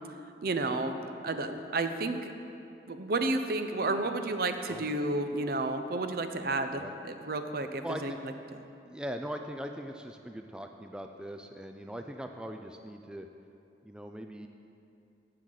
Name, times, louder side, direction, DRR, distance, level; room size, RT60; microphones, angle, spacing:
voice 1, 0.4-2.3 2.9-8.1, right 2 dB, 55° right, 8 dB, 0.6 m, -31 dB
voice 2, 7.6-8.2 8.9-13.3 13.8-14.5, equal, 5° right, 5 dB, 0.3 m, -40 dB
13.5 x 7.6 x 3.9 m, 2.6 s
head